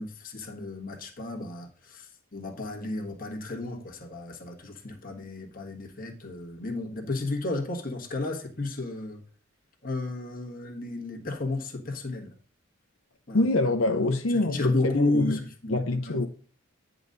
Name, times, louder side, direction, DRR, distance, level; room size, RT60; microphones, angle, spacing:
voice 1, 0.0-9.2 9.8-12.3 13.3-13.4 14.3-16.2, left 2 dB, 45° left, 1.4 m, -32 dB
voice 2, 13.3-15.4 15.7-16.3, left 2 dB, 80° left, 0.8 m, -25 dB
10.0 x 4.0 x 5.2 m
head